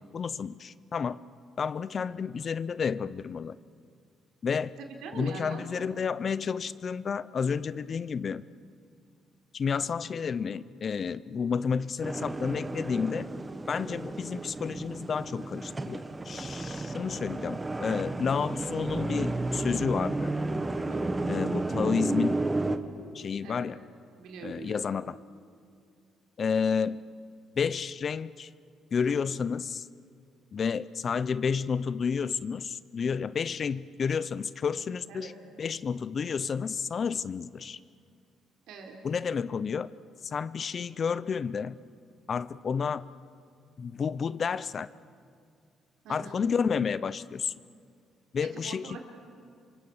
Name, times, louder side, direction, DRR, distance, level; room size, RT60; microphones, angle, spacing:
voice 1, 0.1-1.2 1.6-3.6 4.4-4.7 5.1-8.4 9.5-13.3 13.7-20.3 21.3-22.4 23.1-23.8 24.4-25.2 26.4-27.0 27.6-28.5 28.9-29.9 30.5-35.3 35.6-37.8 39.0-39.9 40.2-41.7 42.3-43.0 43.8-44.9 46.1-47.5 48.3-49.0, left 6 dB, 45° left, 17 dB, 0.7 m, -30 dB
voice 2, 4.9-5.8 20.8-21.2 23.4-23.7 24.2-24.8 35.1-35.3 38.7-38.9 46.0-46.4 48.4-49.0, right 4 dB, 80° right, 2 dB, 4.1 m, -42 dB
sound 1, 12.0-22.8, right 2 dB, 20° right, 1.4 m, -32 dB
27.5 x 24.5 x 7.2 m, 2.2 s
cardioid pair, 95°, 0 cm